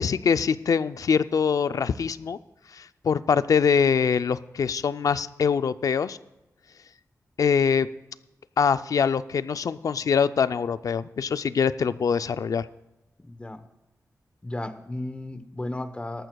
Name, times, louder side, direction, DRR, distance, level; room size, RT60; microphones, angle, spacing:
voice 1, 0.0-2.4 2.7-6.2 7.4-7.9 8.6-12.7, left 6 dB, 75° left, 13 dB, 0.4 m, -23 dB
voice 2, 13.2-13.6 14.4-16.3, left 1 dB, 20° left, 10 dB, 0.9 m, -34 dB
19.0 x 13.5 x 2.3 m, 1.0 s
wide cardioid pair, 115°, 6 cm